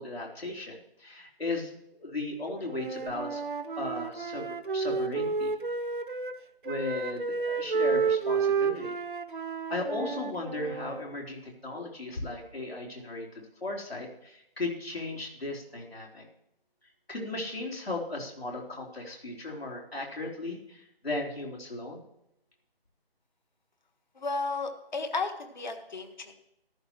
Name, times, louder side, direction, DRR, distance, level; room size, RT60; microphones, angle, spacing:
voice 1, 0.0-1.7 2.0-3.4 3.8-4.5 4.7-5.5 6.6-8.9 9.7-16.2 17.1-22.0, left 2 dB, 75° left, -1 dB, 3.9 m, -36 dB
Wind instrument woodwind instrument, 2.6-6.4 6.6-11.0, right 5 dB, 55° right, 0.9 m, -31 dB
voice 2, 24.1-26.3, left 3 dB, 45° left, 6 dB, 1.6 m, -33 dB
14.0 x 12.5 x 3.2 m, 0.78 s
figure-of-eight pair, 160°, 31 cm